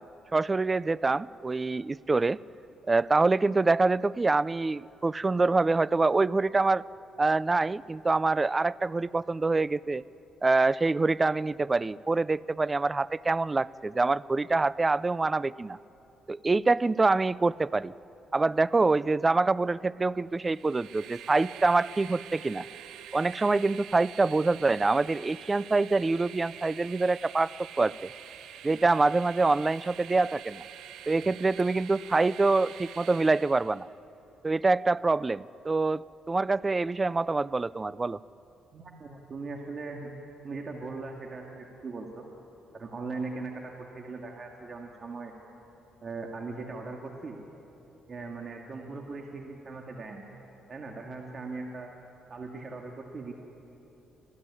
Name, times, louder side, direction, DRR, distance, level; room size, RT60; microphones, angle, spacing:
voice 1, 0.3-2.4 2.9-6.8 7.2-10.0 10.4-15.8 16.3-17.9 18.3-22.7 23.1-27.5 27.8-28.1 28.6-30.6 31.1-33.9 34.4-38.2, right 3 dB, 25° right, 20 dB, 0.4 m, -25 dB
Train, 20.4-33.9, right 10 dB, 80° right, 0.9 m, -46 dB
voice 2, 38.7-40.1 40.4-42.3 42.7-45.3 46.0-47.4 48.1-50.3 50.7-51.9 52.3-53.3, right 3 dB, 40° right, 1 dB, 2.4 m, -39 dB
26.0 x 16.5 x 9.8 m, 3.0 s
cardioid pair, 90°, 0 cm